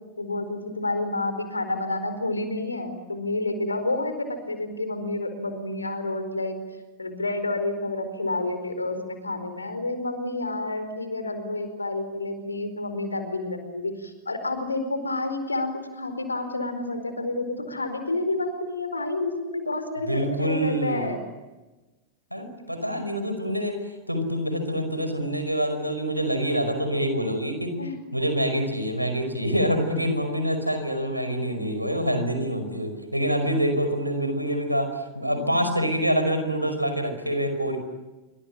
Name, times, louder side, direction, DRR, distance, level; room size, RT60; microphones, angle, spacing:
voice 1, 0.2-6.6 7.0-21.2 27.8-27.9 35.3-35.7, left 2 dB, 80° left, 9 dB, 4.6 m, -29 dB
voice 2, 20.1-21.1 22.3-27.8 28.1-37.8, equal, 90° right, 8 dB, 5.2 m, -26 dB
27.0 x 24.5 x 8.9 m, 1.1 s
figure-of-eight pair, 90°, 0 cm